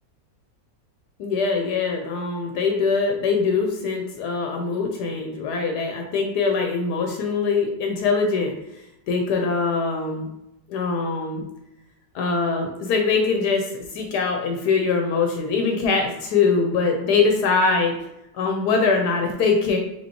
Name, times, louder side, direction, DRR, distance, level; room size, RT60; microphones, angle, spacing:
voice 1, 1.2-10.3 10.7-11.4 12.1-17.9 18.3-19.8, left 4 dB, 75° left, 2 dB, 1.1 m, -23 dB
4.3 x 2.7 x 2.8 m, 0.88 s
omnidirectional pair, 1.8 m